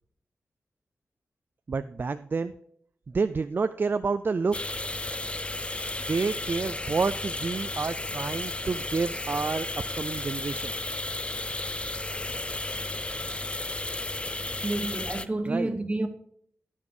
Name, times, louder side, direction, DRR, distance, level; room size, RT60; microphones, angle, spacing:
voice 1, 1.7-2.5 3.1-4.8 6.1-10.7 15.5-15.7, right 4 dB, 40° right, 0.3 m, -29 dB
sound 1, 4.5-15.3, left 2 dB, 20° left, 0.4 m, -33 dB
voice 2, 14.6-16.1, right 2 dB, 25° right, 1.0 m, -29 dB
9.5 x 7.2 x 4.8 m
cardioid pair, 65°, 5 cm